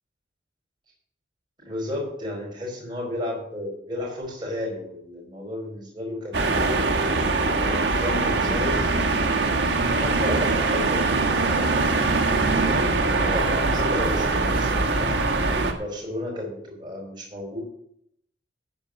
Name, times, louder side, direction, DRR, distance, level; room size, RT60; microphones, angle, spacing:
voice 1, 1.6-6.9 7.7-8.9 9.9-11.9 12.6-15.1 15.7-17.6, left 1 dB, 25° right, -3 dB, 5.2 m, -33 dB
sound 1, 6.3-15.7, right 3 dB, 70° right, 1.5 m, -22 dB
14.0 x 5.3 x 7.5 m, 0.69 s
head